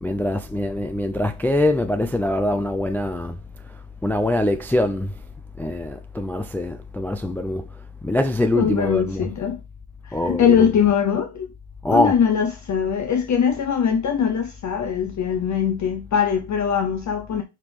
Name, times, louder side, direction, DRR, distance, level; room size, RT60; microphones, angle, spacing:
voice 1, 0.0-3.4 4.0-5.1 5.6-7.7 8.0-9.3 10.1-10.7 11.8-12.1, left 1 dB, 5° left, 0.3 m, -23 dB
voice 2, 8.5-9.6 10.0-11.5 11.9-17.4, left 7 dB, 40° left, 0.8 m, -21 dB
5.8 x 5.0 x 3.5 m
cardioid pair, 140°, 45 cm